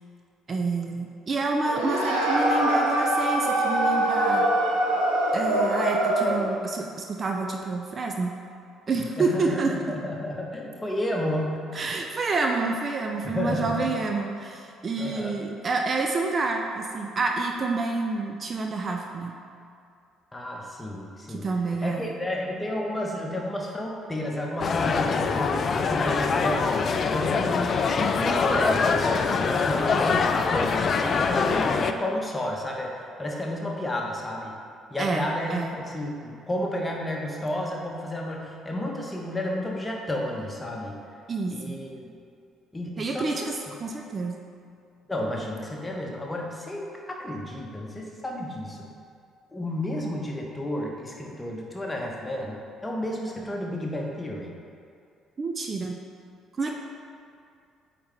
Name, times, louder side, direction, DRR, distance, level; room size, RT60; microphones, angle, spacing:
voice 1, 0.5-4.5 5.3-8.4 8.9-9.8 11.7-19.4 21.3-22.2 35.0-35.8 41.3-41.8 43.0-44.4 55.4-56.0 56.6-56.7, right 3 dB, 35° right, 2 dB, 0.5 m, -28 dB
sound 1, 1.6-6.5, right 1 dB, 75° right, 1.1 m, -23 dB
voice 2, 9.2-11.6 13.2-14.0 15.0-15.4 20.3-26.8 27.1-32.9 33.2-34.5 34.9-41.0 41.5-42.0 42.7-43.6 45.1-48.9 49.5-52.6 52.8-54.5 56.6-56.7, left 1 dB, 15° left, -1 dB, 1.2 m, -31 dB
sound 2, 24.6-31.9, left 5 dB, 40° left, 0.4 m, -24 dB
8.5 x 4.2 x 3.5 m, 2.5 s
figure-of-eight pair, 50°, 0 cm